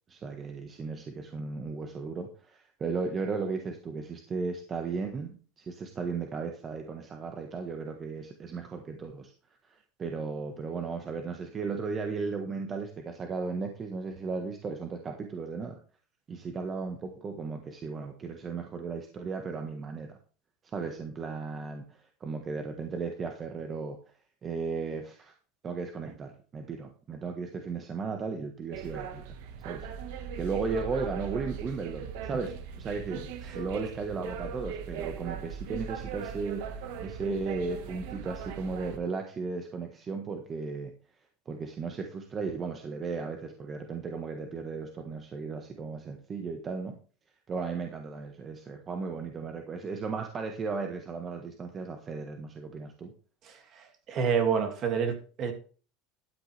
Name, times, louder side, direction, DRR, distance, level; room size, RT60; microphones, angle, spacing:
voice 1, 0.1-9.3 9.7-15.8 16.3-20.2 20.7-24.0 24.4-25.3 25.6-29.2 29.6-29.9 30.3-33.3 33.5-40.9 41.5-47.0 47.5-53.1, right 4 dB, 25° right, 4 dB, 1.4 m, -35 dB
sound 1, 28.7-39.0, right 7 dB, 75° right, 1.5 m, -39 dB
voice 2, 54.1-55.5, right 6 dB, 40° right, 6 dB, 2.4 m, -27 dB
12.5 x 9.5 x 3.4 m, 0.38 s
supercardioid pair, 135°, 0 cm